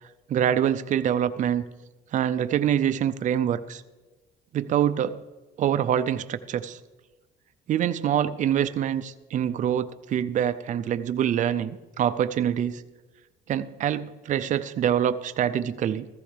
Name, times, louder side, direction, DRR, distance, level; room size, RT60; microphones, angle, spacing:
voice 1, 0.3-1.6 2.1-3.8 4.5-5.2 5.6-6.8 7.7-12.8 13.5-16.1, right 9 dB, 50° right, 11 dB, 0.5 m, -25 dB
15.0 x 14.5 x 3.4 m, 1.2 s
cardioid pair, 110°, 17 cm